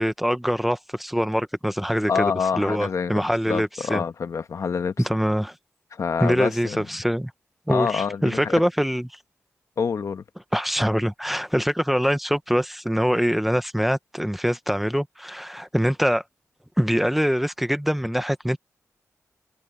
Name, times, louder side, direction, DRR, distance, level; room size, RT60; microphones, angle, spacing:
voice 1, 0.0-2.3 2.6-4.0 5.0-5.5 6.2-7.3 7.7-9.1 10.5-16.2 16.8-18.6, equal, 5° right, 1.0 m, -24 dB
voice 2, 2.1-4.9 5.9-6.9 7.7-8.5 9.8-10.2, left 6 dB, 65° left, 1.3 m, -27 dB
cardioid pair, 80°, 6 cm